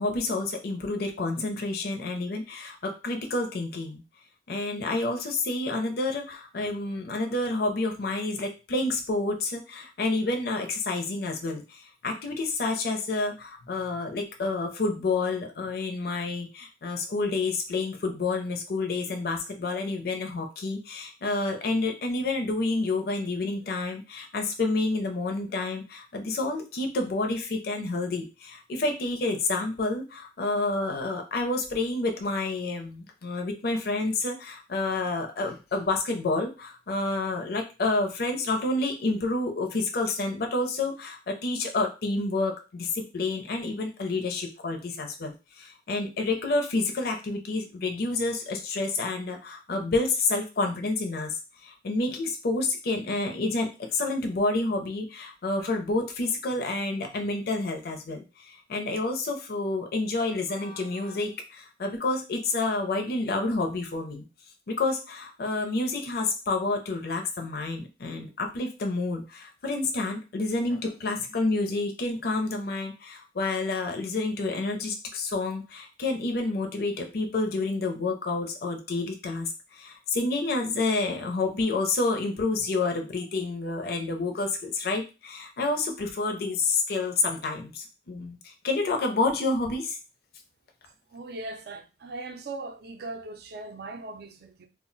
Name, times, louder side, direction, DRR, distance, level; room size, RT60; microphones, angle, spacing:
voice 1, 0.0-4.0 4.5-64.3 64.7-90.0, left 3 dB, 60° left, 0.5 m, -29 dB
voice 2, 91.1-94.7, right 2 dB, 60° right, 0.5 m, -39 dB
2.3 x 2.1 x 3.8 m
head